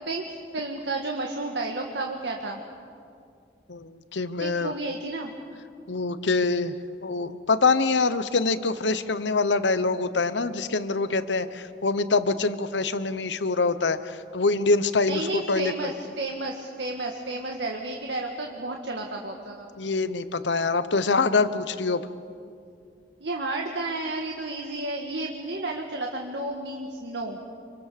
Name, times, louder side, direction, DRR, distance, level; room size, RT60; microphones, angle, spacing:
voice 1, 0.5-2.6 4.4-5.3 15.1-19.7 23.2-27.4, right 2 dB, 75° right, 1 dB, 1.7 m, -32 dB
voice 2, 3.7-4.7 5.9-6.7 7.0-15.9 19.8-22.0, left 3 dB, 90° left, 12 dB, 1.0 m, -25 dB
27.0 x 24.0 x 6.8 m, 2.4 s
head